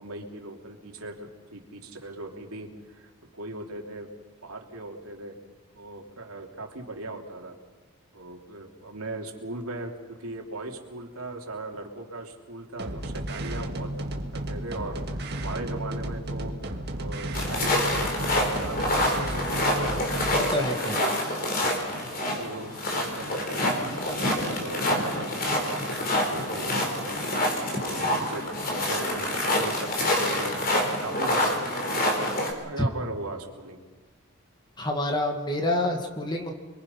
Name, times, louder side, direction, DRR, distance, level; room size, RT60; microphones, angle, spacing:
voice 1, 0.0-4.1 4.4-5.3 5.7-7.5 8.1-21.0 22.3-30.5 31.0-32.0 32.4-33.8, right 2 dB, 85° right, 1 dB, 3.2 m, -39 dB
sound 1, 12.8-20.5, right 1 dB, 50° right, 1.8 m, -33 dB
sound 2, 17.3-32.5, left 1 dB, 40° left, 4.2 m, -27 dB
voice 2, 20.3-21.0 32.8-32.9 34.8-36.5, left 1 dB, 20° left, 2 dB, 2.0 m, -27 dB
28.5 x 22.5 x 5.8 m, 1.3 s
head